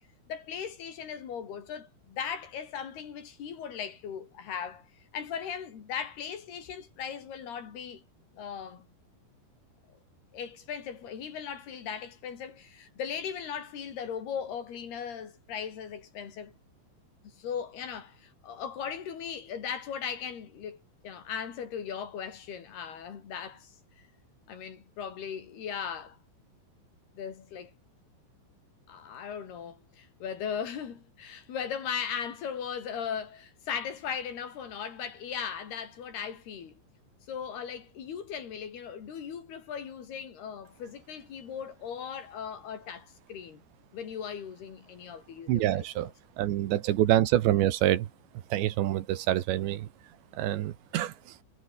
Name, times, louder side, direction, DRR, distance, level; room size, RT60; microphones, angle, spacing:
voice 1, 0.3-8.0 8.3-8.9 10.3-16.5 17.4-24.1 24.5-26.2 27.1-27.7 28.9-36.8 37.3-43.6 43.9-45.8 50.5-50.6, left 7 dB, 60° left, 4.9 m, -38 dB
voice 2, 45.5-46.1 46.4-48.1 48.5-49.9 50.3-51.1, right 13 dB, 75° right, 3.5 m, -26 dB
omnidirectional pair, 5.3 m